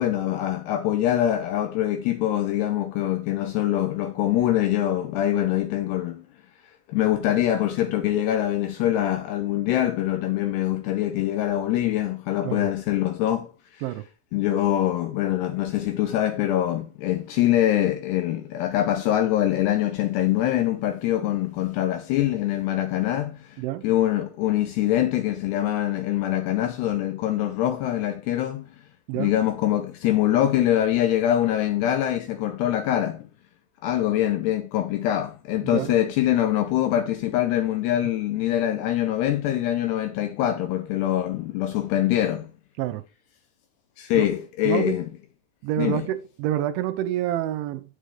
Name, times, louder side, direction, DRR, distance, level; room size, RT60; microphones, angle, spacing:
voice 1, 0.0-6.2 6.9-13.8 14.3-28.7 29.2-33.3 33.8-42.5 44.0-45.1 45.8-46.1, left 12 dB, 80° left, 2.5 m, -24 dB
voice 2, 35.6-35.9 42.8-43.0 44.1-44.3 44.6-45.0 45.6-48.0, right 12 dB, 80° right, 3.1 m, -28 dB
9.9 x 9.0 x 3.4 m
omnidirectional pair, 5.6 m